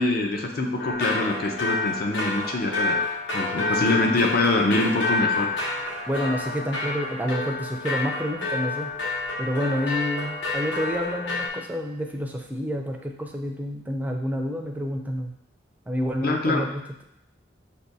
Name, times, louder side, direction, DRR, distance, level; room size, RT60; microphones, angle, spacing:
voice 1, 0.0-3.0 3.3-5.5 16.2-16.7, left 2 dB, 55° left, 3 dB, 0.6 m, -24 dB
sound 1, 0.8-11.5, left 2 dB, 80° left, 0.9 m, -29 dB
voice 2, 3.8-4.3 6.1-8.9 9.4-15.3 15.9-17.0, equal, 10° right, 2 dB, 0.4 m, -29 dB
5.9 x 2.2 x 2.7 m, 0.77 s
head